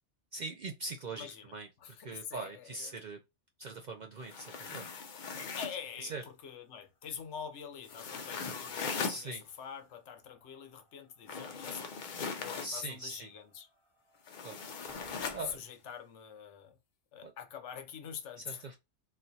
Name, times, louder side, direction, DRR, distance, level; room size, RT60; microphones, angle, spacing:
voice 1, 0.3-3.2 3.6-4.9 5.3-5.5 6.0-6.2 9.1-9.4 12.6-13.3 14.4-14.6 15.3-15.6 17.2-17.3 18.5-18.8, right 2 dB, 60° right, 0.5 m, -42 dB
voice 2, 1.2-3.0 5.6-11.9 12.4-13.7 15.4-16.8 17.1-18.8, left 7 dB, 80° left, 1.0 m, -45 dB
sound 1, 4.2-5.8 7.8-9.2 11.3-12.7 14.3-15.4, left 5 dB, 55° left, 0.6 m, -39 dB
sound 2, 6.3-15.6, left 1 dB, 30° left, 1.1 m, -63 dB
4.0 x 2.4 x 2.7 m
omnidirectional pair, 1.2 m